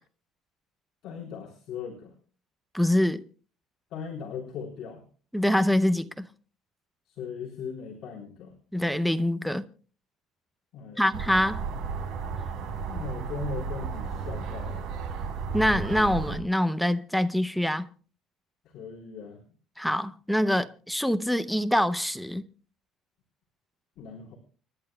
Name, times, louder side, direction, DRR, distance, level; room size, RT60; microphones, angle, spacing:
voice 1, 1.0-2.1 3.9-5.0 7.1-8.5 10.7-11.1 12.9-14.9 18.7-19.4 24.0-24.3, left 6 dB, 50° left, 3.5 m, -38 dB
voice 2, 2.7-3.2 5.3-6.3 8.7-9.6 11.0-11.7 15.5-17.9 19.8-22.4, left 1 dB, ahead, 0.6 m, -25 dB
sound 1, 11.1-16.4, right 5 dB, 60° right, 3.8 m, -33 dB
29.5 x 10.5 x 2.2 m
cardioid pair, 175°, 0 cm